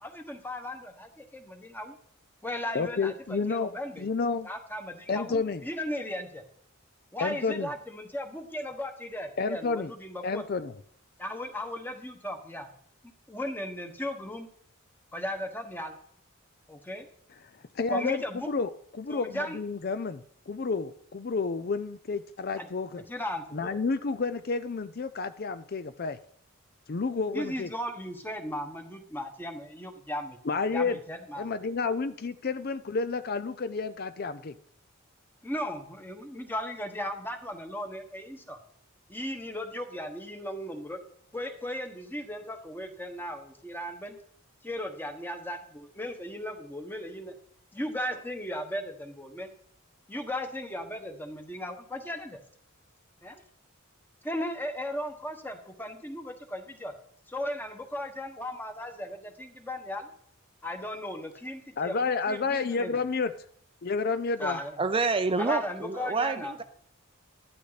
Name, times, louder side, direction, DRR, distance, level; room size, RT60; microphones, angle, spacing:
voice 1, 0.0-2.0 2.4-4.1 4.4-6.4 7.1-10.4 11.2-12.7 13.3-14.5 15.1-16.0 16.7-17.1 17.9-18.5 19.1-19.6 22.6-22.7 23.0-23.8 27.3-30.4 30.7-31.5 35.4-38.6 39.1-41.0 41.3-44.2 44.6-47.3 47.7-49.5 50.1-52.4 53.2-53.4 54.2-56.9 57.3-60.1 60.6-63.0 64.4-64.8 65.4-66.5, left 1 dB, 10° left, 5 dB, 1.3 m, -36 dB
voice 2, 2.7-3.7 4.0-4.5 5.1-5.6 7.2-7.7 9.4-9.9 10.2-10.7 17.8-23.0 23.5-26.2 26.9-27.7 30.4-31.0 31.4-34.5 61.8-63.3 63.8-64.6, left 4 dB, 45° left, 12 dB, 0.5 m, -30 dB
voice 3, 64.8-66.6, right 4 dB, 25° right, 9 dB, 0.5 m, -28 dB
12.0 x 12.0 x 4.1 m, 0.64 s
head